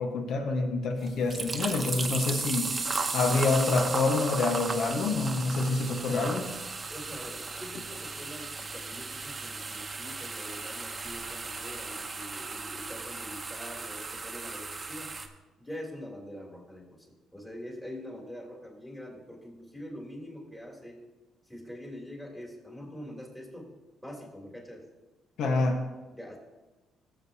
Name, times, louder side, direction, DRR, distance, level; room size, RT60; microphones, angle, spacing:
voice 1, 0.0-2.8 3.1-6.5 25.4-25.8, left 3 dB, 75° left, 3 dB, 1.3 m, -27 dB
sound 1, 1.0-15.3, right 4 dB, 30° right, 0.9 m, -36 dB
voice 2, 6.9-15.1 15.6-21.0 21.5-23.7 24.0-24.8 26.1-26.4, equal, 10° left, -3 dB, 3.1 m, -44 dB
15.0 x 7.6 x 2.8 m, 1.2 s
cardioid pair, 90°, 0 cm